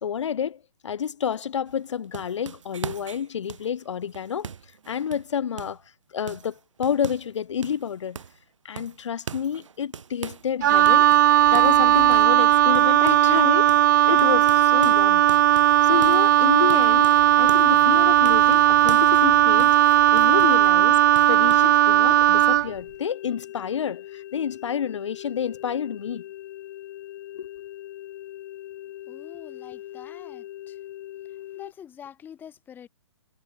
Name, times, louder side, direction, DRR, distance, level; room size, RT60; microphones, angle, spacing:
voice 1, 0.0-4.5 4.9-5.8 6.1-8.2 8.6-15.3 15.8-26.2 27.3-27.5, left 8 dB, 70° left, 1.2 m, -29 dB
sound 1, 1.7-5.9 6.3-7.4 7.6-8.4 8.8-10.5 10.9-13.4 13.7-13.9 14.2-17.8 18.3-20.7 21.2-21.6, right 7 dB, 80° right, 2.6 m, -41 dB
Wind instrument woodwind instrument, 10.6-22.7, right 12 dB, 40° right, 0.4 m, -17 dB
sound 2, 22.6-31.7, left 13 dB, 40° left, 5.0 m, -41 dB
voice 2, 29.1-30.8 31.6-32.9, left 9 dB, 10° left, 3.9 m, -45 dB
hypercardioid pair, 160°, 16 cm